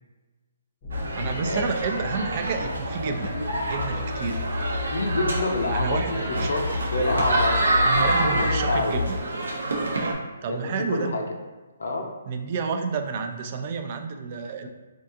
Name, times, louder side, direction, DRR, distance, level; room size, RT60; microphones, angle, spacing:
sound 1, 0.8-9.2, left 3 dB, 25° left, 0.5 m, -32 dB
sound 2, 0.9-10.1, right 2 dB, 90° right, 0.6 m, -27 dB
voice 1, 1.1-3.3 3.6-4.5 5.7-6.5 7.8-9.2 10.4-11.2 12.3-14.7, right 5 dB, 40° right, 6 dB, 0.3 m, -30 dB
voice 2, 4.9-6.2 6.5-7.6 8.2-9.0 10.5-11.2 11.8-12.1, left 2 dB, 80° left, 2 dB, 0.5 m, -27 dB
3.4 x 2.4 x 2.6 m, 1.2 s
hypercardioid pair, 155°, 0 cm